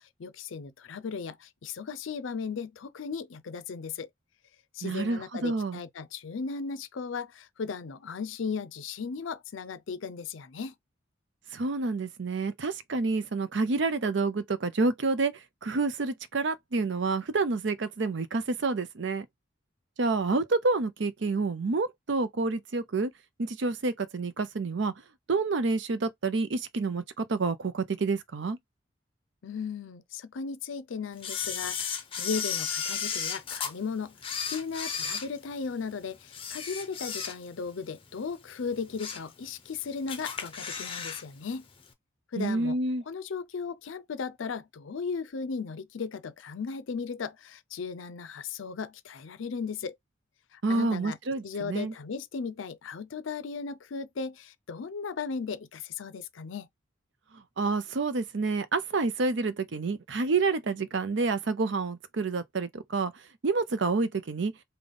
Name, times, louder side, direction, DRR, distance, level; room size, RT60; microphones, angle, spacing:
voice 1, 0.0-4.1 4.7-10.7 29.4-41.7 42.3-42.8 43.1-50.0 50.5-51.2 51.4-56.7, left 5 dB, 75° left, 0.5 m, -36 dB
voice 2, 4.8-5.8 11.5-19.3 20.0-23.1 23.4-24.9 25.3-28.6 42.4-43.0 50.6-51.9 57.3-63.1 63.4-64.5, right 3 dB, 65° right, 0.6 m, -28 dB
Camera, 31.2-33.7 34.2-35.8 36.3-37.7 38.0-38.2 38.7-39.3 39.6-39.7 40.1-41.2 41.5-41.6, left 7 dB, 25° left, 0.6 m, -34 dB
3.5 x 2.2 x 3.8 m
head